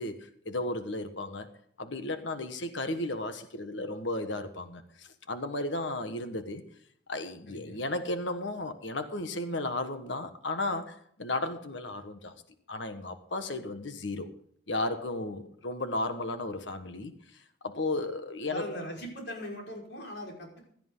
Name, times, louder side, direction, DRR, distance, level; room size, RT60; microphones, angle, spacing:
voice 1, 0.0-1.5 1.8-6.6 7.1-12.4 12.7-14.3 14.7-18.7, left 2 dB, 85° left, 1.5 m, -34 dB
voice 2, 7.5-7.8 18.5-20.6, equal, 65° left, 5.1 m, -40 dB
16.5 x 12.5 x 3.8 m
head